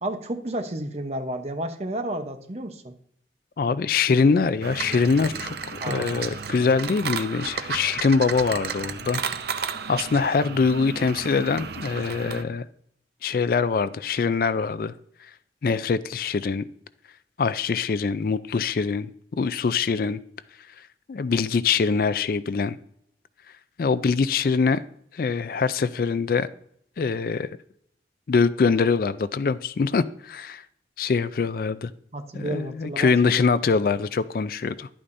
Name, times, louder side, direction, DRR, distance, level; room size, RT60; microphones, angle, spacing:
voice 1, 0.0-2.9 5.8-6.4 32.1-33.6, right 1 dB, 35° right, 0.8 m, -32 dB
voice 2, 3.6-9.2 9.9-12.6 13.2-14.9 15.6-16.7 17.4-20.2 21.1-22.8 23.8-24.8 25.1-26.5 27.0-27.6 28.3-30.6 31.0-31.9 32.3-34.9, left 5 dB, 55° left, 0.4 m, -23 dB
sound 1, 4.6-12.4, right 6 dB, 65° right, 0.5 m, -33 dB
11.0 x 8.6 x 2.6 m
head